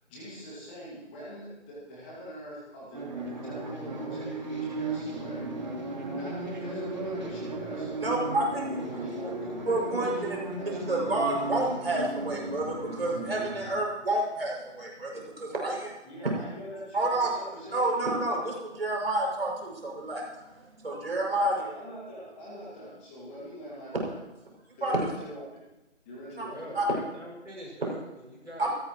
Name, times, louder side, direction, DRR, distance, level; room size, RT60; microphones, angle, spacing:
voice 1, 0.0-5.5 6.1-8.2 8.7-10.2 10.6-11.1 16.0-17.9 21.4-24.2 24.7-25.6 26.0-26.9, equal, 10° left, -6 dB, 2.1 m, -44 dB
sound 1, 2.9-13.7, right 2 dB, 40° right, 2.8 m, -35 dB
voice 2, 8.0-8.6 9.7-10.4 10.9-15.9 16.9-17.3 17.7-21.5 24.8-24.9 26.4-26.5 26.7-26.9 28.6-28.7, right 2 dB, 55° right, -2 dB, 6.6 m, -29 dB
voice 3, 26.5-28.7, right 1 dB, 85° right, -3 dB, 6.7 m, -43 dB
27.0 x 13.0 x 3.1 m, 1.0 s
figure-of-eight pair, 160°, 36 cm